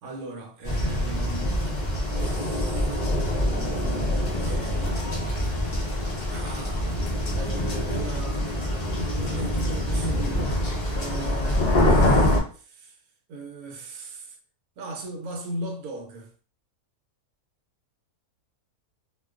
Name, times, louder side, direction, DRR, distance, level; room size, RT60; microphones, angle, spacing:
voice 1, 0.0-1.7 2.1-3.0 3.4-5.0 6.3-10.6 10.9-13.0 13.3-14.4 14.8-16.3, right 2 dB, 80° right, 1.1 m, -38 dB
sound 1, 0.6-12.4, left 1 dB, 55° left, 0.4 m, -25 dB
2.5 x 2.2 x 2.3 m
omnidirectional pair, 1.6 m